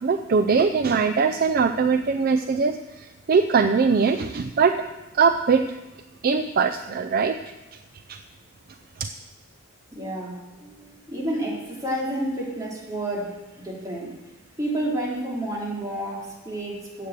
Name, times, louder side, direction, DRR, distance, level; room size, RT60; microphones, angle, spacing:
voice 1, 0.0-4.7 5.1-5.7 6.2-7.4 8.1-8.2 9.0-9.1, right 5 dB, 45° right, 8 dB, 0.4 m, -21 dB
voice 2, 9.9-14.1 14.6-17.1, right 1 dB, 15° right, -5 dB, 3.2 m, -30 dB
9.5 x 8.1 x 7.6 m, 1.1 s
head